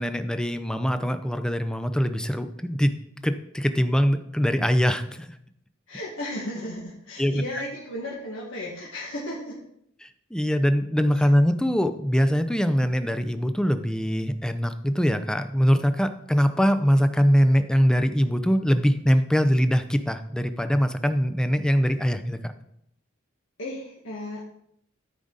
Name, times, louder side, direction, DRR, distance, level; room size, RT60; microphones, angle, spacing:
voice 1, 0.0-3.0 3.2-5.3 7.2-7.4 10.0-22.5, equal, 5° left, 9 dB, 0.5 m, -23 dB
voice 2, 5.9-9.6 11.1-11.3 23.6-24.4, left 1 dB, 80° left, -5 dB, 1.7 m, -35 dB
13.5 x 5.0 x 4.0 m, 0.72 s
head